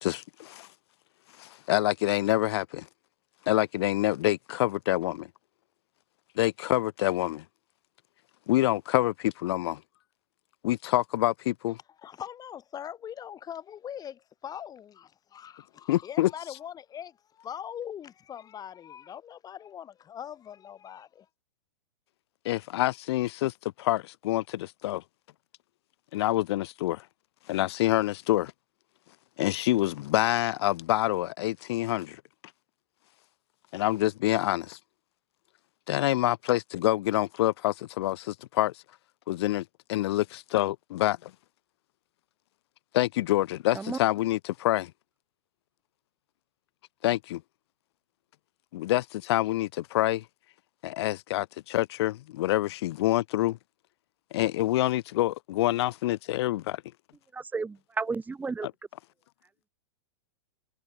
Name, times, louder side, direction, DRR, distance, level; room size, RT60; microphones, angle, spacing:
voice 1, 0.0-0.7 1.4-2.9 3.5-5.3 6.4-7.4 8.5-9.8 10.6-11.8 15.9-16.3 22.4-25.0 26.1-27.0 27.5-28.5 29.4-32.2 33.7-34.8 35.9-38.7 39.3-41.3 42.9-44.9 47.0-47.4 48.7-50.2 50.8-53.6 54.3-56.8 58.6-58.7, left 15 dB, 60° left, 2.3 m, -27 dB
voice 2, 12.0-21.3, left 9 dB, 25° left, 6.4 m, -41 dB
voice 3, 57.3-58.7, right 4 dB, 10° right, 3.3 m, -32 dB
hypercardioid pair, 115°, 15 cm